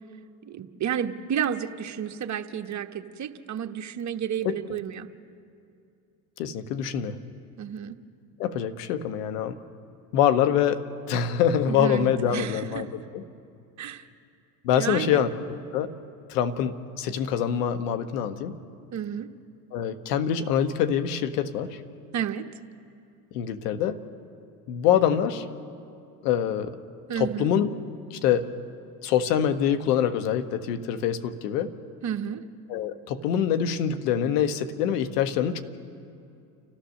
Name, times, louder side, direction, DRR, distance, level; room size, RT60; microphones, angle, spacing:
voice 1, 0.4-5.1 7.6-8.0 11.7-12.9 13.8-14.1 14.8-15.2 18.9-19.3 22.1-22.5 27.1-27.5 32.0-32.4, right 8 dB, 35° right, 6 dB, 1.2 m, -31 dB
voice 2, 6.4-7.2 8.4-9.6 10.1-10.8 11.1-13.2 14.6-15.3 15.7-15.9 16.3-18.6 19.7-21.8 23.3-24.0 24.7-25.4 26.2-26.8 27.2-27.7 28.1-28.5 29.0-31.7 32.7-35.6, left 9 dB, 80° left, 10 dB, 1.2 m, -25 dB
30.0 x 13.5 x 6.5 m, 2.5 s
hypercardioid pair, 80°, 47 cm